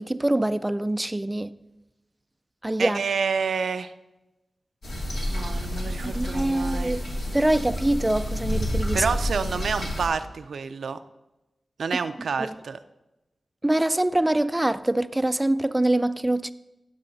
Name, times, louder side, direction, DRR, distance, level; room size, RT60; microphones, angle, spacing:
voice 1, 0.0-1.5 2.6-3.0 6.0-7.1 7.3-9.0 13.6-16.5, right 1 dB, 15° right, 0.3 m, -24 dB
voice 2, 2.8-3.9 5.3-7.0 8.9-11.0 11.8-12.8, right 5 dB, 90° right, 0.5 m, -28 dB
sound 1, 4.8-10.1, equal, 85° left, 3.2 m, -29 dB
15.0 x 7.7 x 4.0 m
wide cardioid pair, 90°, 0 cm